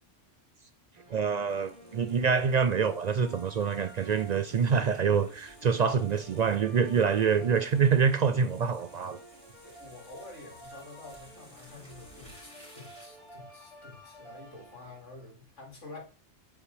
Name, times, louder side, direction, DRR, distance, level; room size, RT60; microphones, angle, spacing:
sound 1, 1.0-15.3, right 1 dB, 30° right, 1.9 m, -52 dB
voice 1, 1.1-9.2, right 6 dB, 70° right, 0.4 m, -26 dB
sound 2, 1.5-13.3, equal, 5° left, 3.4 m, -57 dB
voice 2, 9.6-16.0, left 3 dB, 80° left, 2.6 m, -48 dB
8.0 x 5.3 x 3.3 m
omnidirectional pair, 1.2 m